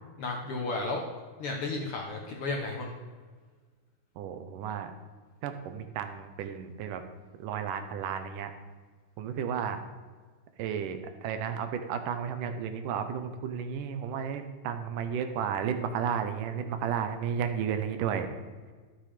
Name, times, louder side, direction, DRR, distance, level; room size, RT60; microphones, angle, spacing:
voice 1, 0.2-1.0 1.4-2.9, left 3 dB, 60° left, 0 dB, 1.7 m, -33 dB
voice 2, 4.2-4.9 5.4-7.0 7.4-8.5 9.2-9.8 10.6-18.3, right 7 dB, 90° right, 8 dB, 2.5 m, -33 dB
12.0 x 7.5 x 5.0 m, 1.5 s
omnidirectional pair, 3.6 m